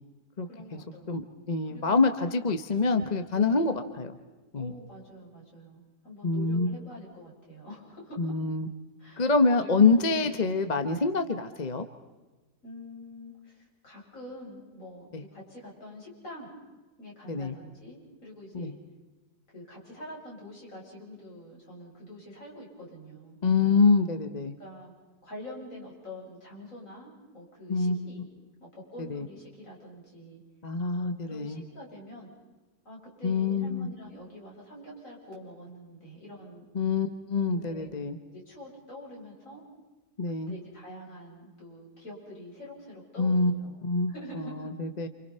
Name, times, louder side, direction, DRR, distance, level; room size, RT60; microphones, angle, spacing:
voice 1, 0.5-1.4 1.6-2.0 3.3-3.8 4.5-8.3 9.0-9.7 10.0-10.3 12.6-16.5 17.0-18.8 19.5-23.4 24.6-24.9 25.2-28.2 28.6-30.4 31.0-32.3 32.8-36.6 37.6-37.9 38.3-39.6 40.3-43.8 44.1-44.7, left 1 dB, 50° left, -4 dB, 8.2 m, -46 dB
voice 2, 1.5-4.2 4.5-4.7 6.2-6.8 8.2-8.7 9.2-11.8 15.1-15.2 17.3-17.5 18.5-18.7 23.4-24.5 27.7-28.1 29.0-29.3 30.6-31.6 33.2-33.9 36.7-38.2 40.2-40.5 43.2-45.1, left 4 dB, 30° left, 8 dB, 1.0 m, -26 dB
28.5 x 28.5 x 5.6 m, 1.2 s
omnidirectional pair, 1.7 m